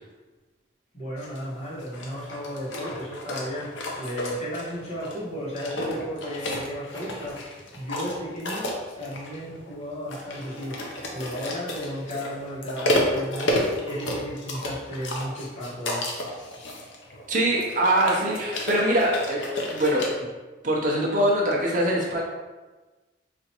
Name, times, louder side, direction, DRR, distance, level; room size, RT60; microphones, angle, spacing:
voice 1, 0.9-10.8 11.1-16.1, equal, 35° left, -7 dB, 1.0 m, -34 dB
sound 1, 1.2-20.1, left 1 dB, 70° left, 0.6 m, -32 dB
voice 2, 17.3-19.4 19.7-20.0 20.6-22.2, right 1 dB, 45° right, -3 dB, 0.6 m, -23 dB
4.2 x 2.4 x 2.8 m, 1.2 s
head